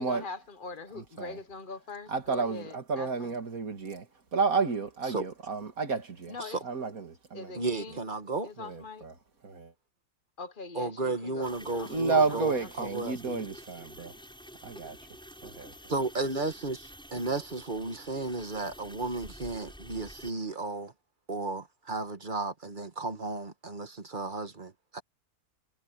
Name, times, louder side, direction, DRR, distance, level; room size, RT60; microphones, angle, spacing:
voice 1, 0.0-3.3 6.3-6.6 7.3-8.1 8.4-9.1 10.4-12.7, left 4 dB, 40° left, 1.1 m, -43 dB
voice 2, 1.0-1.4 2.1-4.1 4.3-6.3 6.6-7.5 8.6-9.1 9.4-9.7 11.9-14.1 14.6-15.0 15.4-15.7, right 4 dB, 65° right, 2.5 m, -31 dB
voice 3, 7.5-8.5 10.7-13.4 15.9-16.8 17.1-20.9 21.3-25.0, right 3 dB, 35° right, 1.6 m, -34 dB
sound 1, 11.4-20.3, equal, 5° left, 5.6 m, -49 dB
omnidirectional pair, 1.6 m